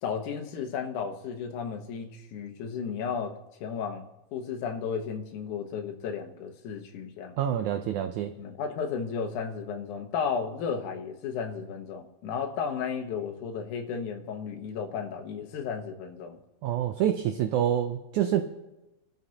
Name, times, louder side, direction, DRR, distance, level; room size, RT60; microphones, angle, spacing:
voice 1, 0.0-3.3 3.6-7.4 8.4-16.4, left 6 dB, 65° left, 3 dB, 2.4 m, -34 dB
voice 2, 7.4-8.3 16.6-18.4, right 10 dB, 80° right, 7 dB, 1.8 m, -27 dB
27.0 x 12.5 x 2.9 m, 0.97 s
omnidirectional pair, 4.2 m